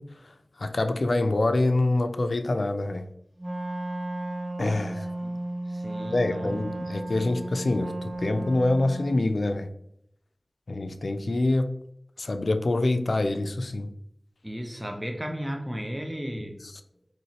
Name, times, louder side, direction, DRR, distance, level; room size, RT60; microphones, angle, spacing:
voice 1, 0.0-3.1 4.6-5.1 6.1-9.7 10.7-11.7 12.2-13.9 16.7-16.8, left 2 dB, 80° left, 8 dB, 0.4 m, -26 dB
Wind instrument woodwind instrument, 3.4-9.3, right 2 dB, 35° right, 1.3 m, -34 dB
voice 2, 5.7-6.6 14.4-16.6, equal, 10° right, 3 dB, 0.7 m, -34 dB
4.3 x 3.0 x 2.9 m, 0.74 s
wide cardioid pair, 45°, 0 cm